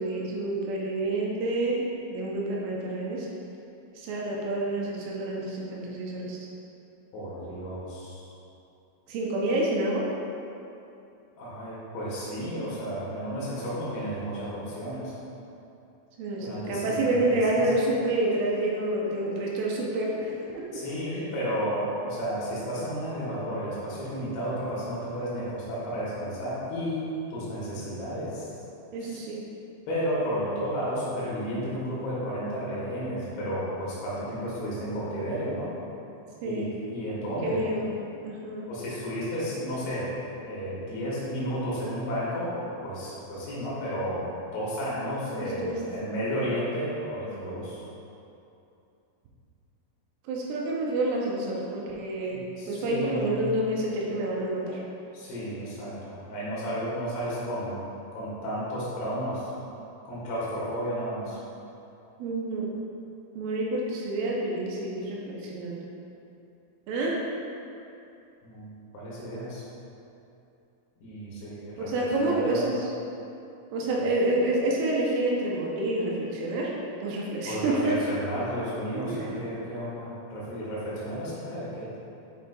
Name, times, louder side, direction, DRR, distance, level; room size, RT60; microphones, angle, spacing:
voice 1, 0.0-3.3 4.0-6.4 9.1-10.1 16.2-20.8 28.9-29.4 36.4-36.6 37.4-38.0 38.2-38.7 45.4-45.8 50.3-54.8 62.2-62.8 63.4-65.8 66.9-67.2 71.8-72.9 73.7-76.7 77.0-78.0 78.9-79.3, right 1 dB, 80° right, -3 dB, 3.2 m, -28 dB
voice 2, 7.1-8.2 11.4-15.1 16.4-17.6 20.7-28.5 29.0-29.2 29.9-35.7 36.4-37.6 38.7-40.1 40.4-47.8 52.3-53.5 55.1-57.8 58.1-59.5 60.1-61.4 68.4-68.7 68.9-69.6 71.0-72.6 74.0-74.1 77.5-82.0, equal, 70° left, -8 dB, 3.3 m, -32 dB
9.2 x 4.9 x 2.2 m, 2.7 s
omnidirectional pair, 5.9 m